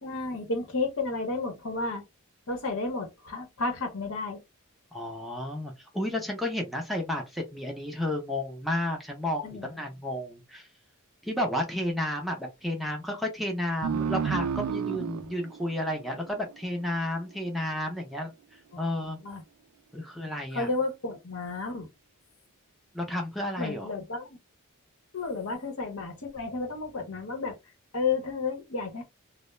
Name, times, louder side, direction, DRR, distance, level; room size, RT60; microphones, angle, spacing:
voice 1, 0.0-2.0 2.5-4.4 9.4-9.7 18.7-19.4 20.5-21.9 23.6-24.4 25.1-27.6 27.9-29.0, left 3 dB, 70° left, 0.8 m, -32 dB
voice 2, 4.9-10.7 11.2-19.2 19.9-20.7 22.9-23.9, left 1 dB, ahead, 0.4 m, -32 dB
sound 1, 13.8-17.0, right 7 dB, 90° right, 0.3 m, -32 dB
2.3 x 2.0 x 2.9 m
head